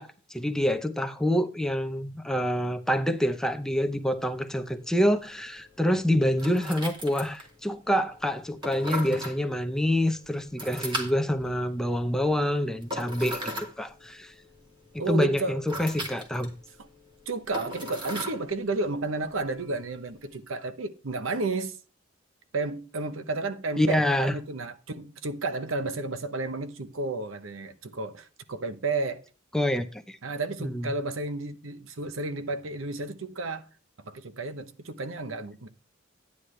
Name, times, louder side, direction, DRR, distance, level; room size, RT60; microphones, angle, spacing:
voice 1, 0.0-14.3 15.1-16.5 23.8-24.3 29.5-30.2 30.6-30.9, equal, 5° left, 0.6 m, -27 dB
sound 1, 2.9-20.4, equal, 25° right, 1.9 m, -40 dB
voice 2, 15.0-15.6 17.3-21.8 22.5-29.2 30.2-33.6 34.0-35.7, right 3 dB, 90° right, 0.9 m, -32 dB
10.0 x 9.7 x 3.2 m
head